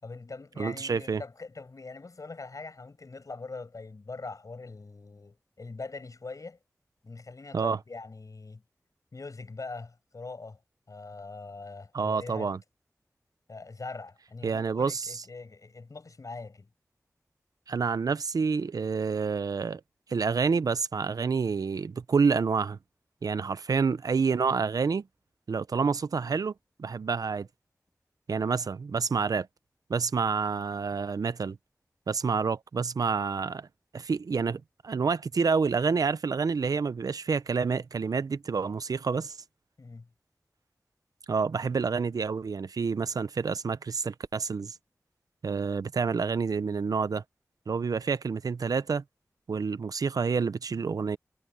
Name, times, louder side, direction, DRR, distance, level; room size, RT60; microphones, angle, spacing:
voice 1, 0.0-6.6 7.0-8.6 9.1-10.6 10.9-12.5 13.5-16.7 39.8-40.1 47.7-47.9, left 3 dB, 70° left, 6.4 m, -42 dB
voice 2, 0.6-1.2 7.5-7.8 11.9-12.6 14.4-15.1 17.7-19.8 20.1-22.8 23.2-25.0 25.5-26.5 26.8-27.5 28.3-29.5 29.9-31.6 32.1-33.7 33.9-39.3 41.3-44.7 45.4-47.2 47.7-49.0 49.5-51.2, right 5 dB, 85° right, 0.6 m, -28 dB
cardioid pair, 40°, 6 cm